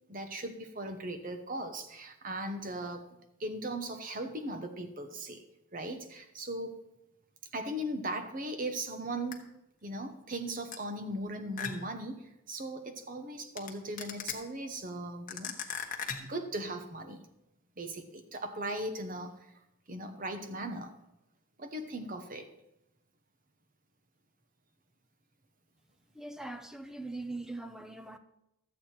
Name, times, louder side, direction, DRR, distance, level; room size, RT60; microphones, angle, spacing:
voice 1, 0.1-3.1 3.4-5.4 5.7-6.8 7.5-9.5 9.8-15.7 16.2-17.2 17.8-19.6 19.9-21.0 21.6-22.5, right 1 dB, 40° right, 1.0 m, -38 dB
sound 1, 9.3-9.4 10.7-10.8 11.6-12.0 13.6-13.7 14.0-14.3 15.3-16.4, left 7 dB, 40° left, 1.1 m, -37 dB
voice 2, 26.1-28.2, right 2 dB, 5° right, 0.6 m, -41 dB
13.0 x 8.2 x 4.4 m
head